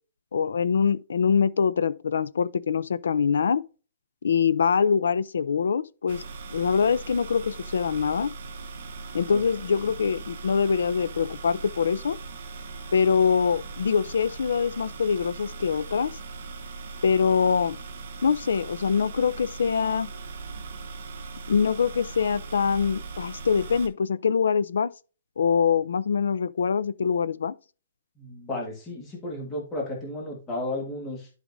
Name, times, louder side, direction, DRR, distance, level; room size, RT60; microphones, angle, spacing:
voice 1, 0.3-3.6 4.2-6.2 6.5-8.3 9.1-12.2 12.9-16.1 17.0-17.8 18.2-20.1 21.5-24.9 25.4-27.5, left 6 dB, 70° left, 0.5 m, -24 dB
sound 1, 6.1-23.9, right 4 dB, 40° right, 1.0 m, -39 dB
voice 2, 28.2-31.3, left 1 dB, 10° left, 1.7 m, -33 dB
11.0 x 4.9 x 2.6 m
hypercardioid pair, 180°, 0 cm